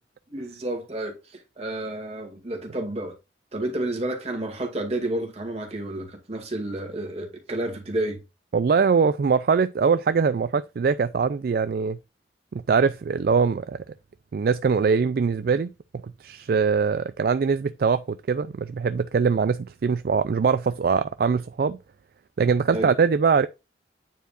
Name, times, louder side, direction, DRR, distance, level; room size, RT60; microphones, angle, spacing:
voice 1, 0.3-3.1 3.5-8.2 22.7-22.9, right 1 dB, 35° right, 2.2 m, -30 dB
voice 2, 8.5-12.0 12.5-13.8 14.3-18.0 18.3-21.8 22.4-23.5, right 5 dB, 55° right, 0.3 m, -22 dB
9.2 x 4.7 x 2.4 m
head